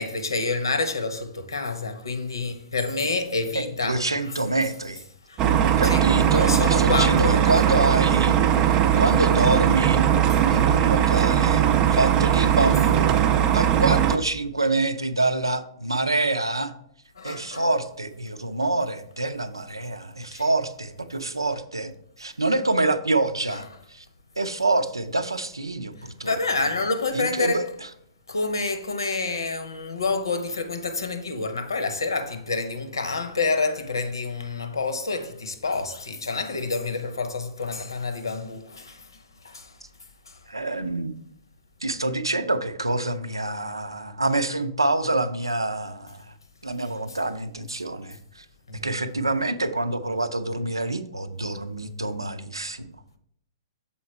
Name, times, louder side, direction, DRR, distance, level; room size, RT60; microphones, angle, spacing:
voice 1, 0.0-4.0 5.3-5.4 5.8-7.8 17.2-17.6 20.3-20.4 23.5-23.6 26.0-27.6 28.3-39.1 39.4-39.7 40.3-40.4 48.7-48.9, left 3 dB, 70° left, 0.9 m, -28 dB
voice 2, 3.5-5.0 5.6-10.0 10.5-11.6 11.9-13.2 13.5-16.7 17.2-21.9 22.2-24.1 24.4-26.4 27.1-27.9 40.5-41.1 41.8-46.3 46.6-48.5 48.8-52.9, right 2 dB, 80° right, 0.6 m, -26 dB
sound 1, 5.4-14.2, right 10 dB, 25° right, 0.4 m, -19 dB
7.1 x 4.3 x 4.3 m
figure-of-eight pair, 115°, 2 cm